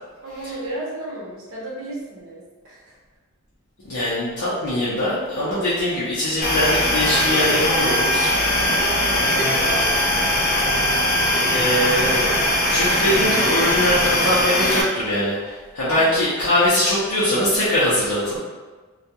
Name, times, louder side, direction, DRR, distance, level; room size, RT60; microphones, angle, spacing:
voice 1, 0.2-2.9 8.8-9.9 15.8-16.5, right 1 dB, 60° right, -5 dB, 0.8 m, -33 dB
voice 2, 3.9-8.3 11.5-12.3 12.7-18.4, left 1 dB, 85° left, -10 dB, 0.7 m, -22 dB
sound 1, 6.4-14.8, left 1 dB, 40° left, 0.4 m, -20 dB
2.3 x 2.2 x 2.8 m, 1.3 s
head